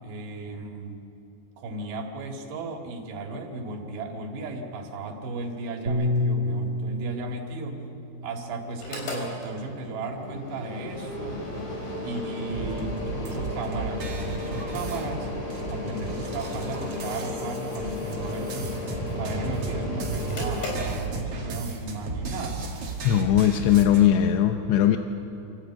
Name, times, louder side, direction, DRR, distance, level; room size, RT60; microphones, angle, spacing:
voice 1, 0.0-1.0 1.6-7.8 8.2-11.4 12.0-15.3 15.7-18.8 19.2-22.7, right 2 dB, 85° right, 2 dB, 4.2 m, -35 dB
Bass guitar, 5.9-12.1, left 1 dB, 25° right, 1.9 m, -32 dB
Mechanical fan, 8.7-21.5, left 2 dB, 60° left, 6.0 m, -35 dB
sound 1, 12.5-24.1, right 3 dB, 45° right, 2.3 m, -34 dB
voice 2, 23.0-25.0, left 10 dB, 90° left, 6 dB, 3.0 m, -19 dB
27.5 x 14.0 x 8.7 m, 3.0 s
omnidirectional pair, 4.8 m